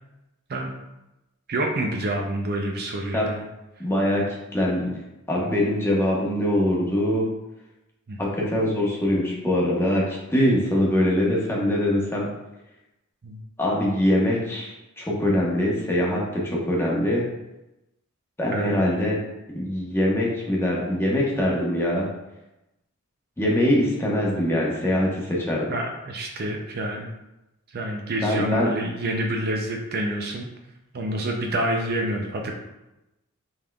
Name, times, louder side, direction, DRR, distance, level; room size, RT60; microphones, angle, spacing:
voice 1, 1.5-3.4 8.1-8.2 13.2-13.4 18.5-18.7 25.7-27.1 27.7-30.5 30.9-32.5, right 1 dB, 45° right, 1 dB, 0.5 m, -27 dB
voice 2, 3.8-4.3 4.5-4.9 5.3-7.3 8.2-12.3 13.6-17.2 18.4-19.2 19.5-22.1 23.4-25.7 28.2-28.7, left 1 dB, 10° left, -4 dB, 1.0 m, -23 dB
5.5 x 3.5 x 2.3 m, 0.95 s
head